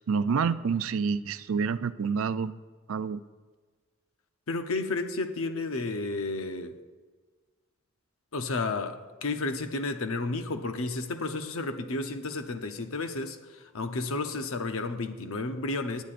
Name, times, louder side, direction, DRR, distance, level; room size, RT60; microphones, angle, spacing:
voice 1, 0.1-2.5 2.9-3.2, right 5 dB, 70° right, 0.4 m, -28 dB
voice 2, 4.5-6.8 8.3-16.0, left 3 dB, 75° left, 0.8 m, -32 dB
18.5 x 10.5 x 2.6 m
head